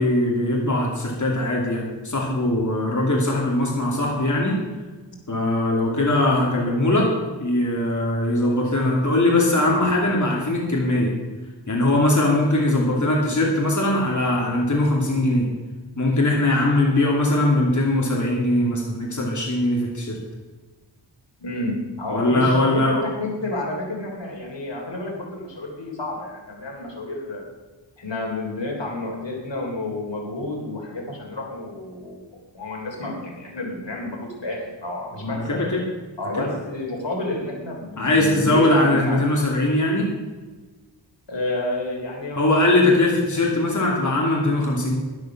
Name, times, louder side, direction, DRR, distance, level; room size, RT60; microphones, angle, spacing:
voice 1, 0.0-4.6 5.3-7.1 7.4-11.1 11.7-15.5 16.0-20.2 22.1-23.1 35.2-35.8 36.4-36.5 38.0-40.1 42.4-44.9, left 1 dB, 40° left, -2 dB, 2.8 m, -21 dB
voice 2, 21.4-27.4 28.0-32.2 32.5-35.6 36.2-39.2 41.3-43.0, left 2 dB, 75° left, 0 dB, 3.6 m, -30 dB
12.0 x 11.5 x 6.1 m, 1.3 s
wide cardioid pair, 85°, 44 cm